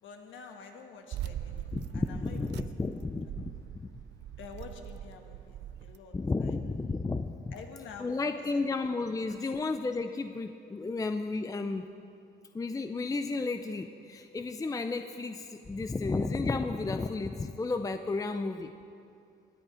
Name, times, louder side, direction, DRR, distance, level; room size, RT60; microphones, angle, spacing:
voice 1, 0.0-3.1 4.4-6.6 7.5-8.2 8.5-8.7 9.2-9.5, left 5 dB, 75° left, 4 dB, 1.4 m, -48 dB
sound 1, 1.1-6.0, right 11 dB, 60° right, 0.5 m, -41 dB
voice 2, 1.7-3.9 6.1-7.5 8.0-11.9 12.5-18.7, left 3 dB, 15° left, 8 dB, 0.5 m, -33 dB
19.5 x 9.6 x 5.0 m, 2.5 s
cardioid pair, 90°, 20 cm